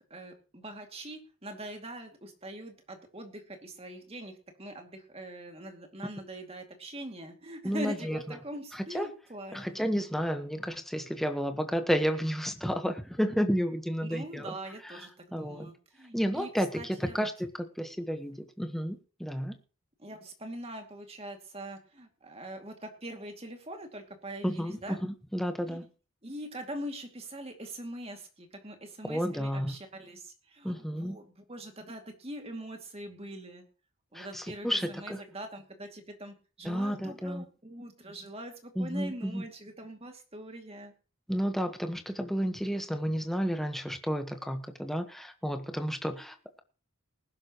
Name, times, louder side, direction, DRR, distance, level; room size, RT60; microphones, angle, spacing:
voice 1, 0.0-9.8 14.0-16.5 16.8-17.2 20.0-25.0 25.7-25.8 26.2-33.6 34.1-40.9, right 1 dB, 25° right, 4 dB, 2.4 m, -43 dB
voice 2, 7.6-8.4 8.7-9.1 9.5-14.5 14.8-15.0 15.3-15.7 16.1-17.5 17.7-19.6 24.4-25.8 29.1-29.7 30.6-31.2 34.1-35.2 36.6-37.4 38.7-39.4 41.3-46.6, equal, ahead, 6 dB, 1.2 m, -31 dB
20.0 x 11.5 x 3.1 m, 0.35 s
head